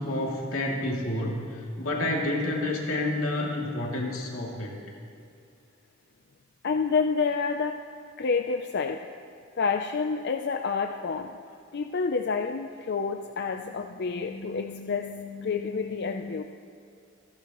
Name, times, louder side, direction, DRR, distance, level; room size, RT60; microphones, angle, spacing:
voice 1, 0.0-4.8, left 1 dB, 85° left, -2 dB, 2.6 m, -29 dB
voice 2, 6.6-7.8 8.2-9.0 9.6-11.3 11.7-16.4, left 5 dB, 55° left, 5 dB, 0.5 m, -28 dB
27.5 x 12.0 x 3.0 m, 2.6 s
head